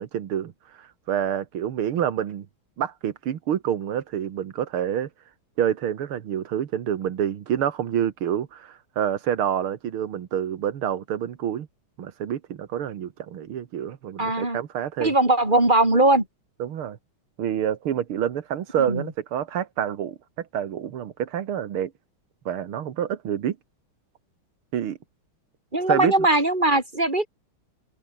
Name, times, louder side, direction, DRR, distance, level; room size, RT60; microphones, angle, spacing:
voice 1, 0.0-2.5 2.8-5.1 5.6-11.7 12.0-15.1 16.6-17.0 17.4-21.9 22.5-23.6 24.7-25.0 25.9-26.1, right 9 dB, 85° right, 2.3 m, -27 dB
voice 2, 14.2-14.6 15.0-16.3 18.9-19.1 25.7-27.3, right 2 dB, 20° right, 5.5 m, -20 dB
omnidirectional pair, 2.3 m